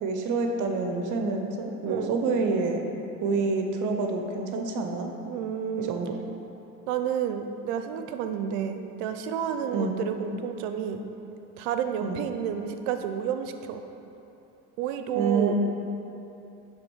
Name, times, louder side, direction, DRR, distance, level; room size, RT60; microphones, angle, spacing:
voice 1, 0.0-2.8 3.2-5.1 5.8-6.2 9.7-10.0 12.0-12.3 15.1-15.5, right 4 dB, 55° right, 3 dB, 0.8 m, -27 dB
voice 2, 5.3-6.0 6.9-11.0 11.6-13.8 14.8-15.5, right 8 dB, 90° right, 7 dB, 0.6 m, -30 dB
9.7 x 3.5 x 4.6 m, 2.9 s
supercardioid pair, 95°, 36 cm